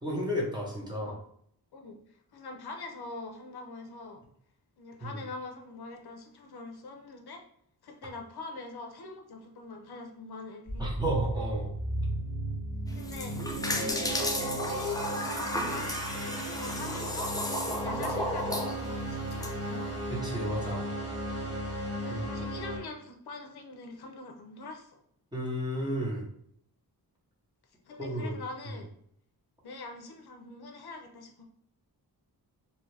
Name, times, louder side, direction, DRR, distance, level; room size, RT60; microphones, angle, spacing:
voice 1, 0.0-1.2 5.0-5.2 10.8-11.7 20.1-20.9 22.1-22.3 25.3-26.3 28.0-28.4, equal, 10° right, -4 dB, 0.8 m, -32 dB
voice 2, 0.9-1.2 1.7-4.2 4.8-7.4 7.8-10.9 12.9-17.3 17.8-20.0 22.0-25.0 27.9-28.9 29.6-31.4, left 3 dB, 75° left, 3 dB, 0.6 m, -43 dB
sound 1, 10.7-22.8, right 1 dB, 35° right, 1.1 m, -35 dB
sound 2, 12.9-19.5, left 1 dB, 10° left, 0.3 m, -34 dB
2.7 x 2.4 x 3.2 m, 0.68 s
wide cardioid pair, 115°, 39 cm